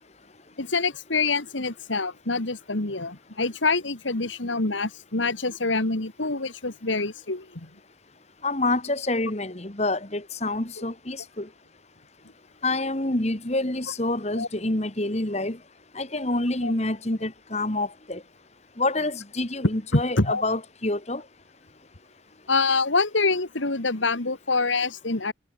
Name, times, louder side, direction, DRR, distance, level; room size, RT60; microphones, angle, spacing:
voice 1, 0.6-7.7 10.8-10.9 14.4-14.5 16.6-16.7 19.9-20.4 22.5-25.3, left 3 dB, 80° left, 2.3 m, -26 dB
voice 2, 8.4-11.5 12.6-15.6 16.0-18.2 18.8-21.2, left 2 dB, 35° left, 1.9 m, -27 dB
head